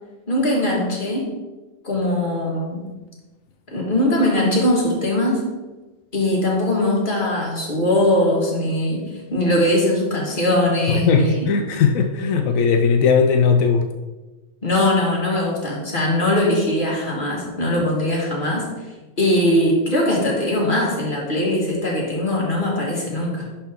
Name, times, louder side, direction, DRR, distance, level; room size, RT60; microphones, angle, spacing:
voice 1, 0.3-1.3 1.8-2.9 3.7-5.4 6.1-11.5 14.6-18.7 19.2-23.5, left 1 dB, 40° left, -3 dB, 2.0 m, -21 dB
voice 2, 10.9-13.9, left 5 dB, 85° left, 6 dB, 1.0 m, -18 dB
11.0 x 4.3 x 3.6 m, 1.2 s
omnidirectional pair, 1.4 m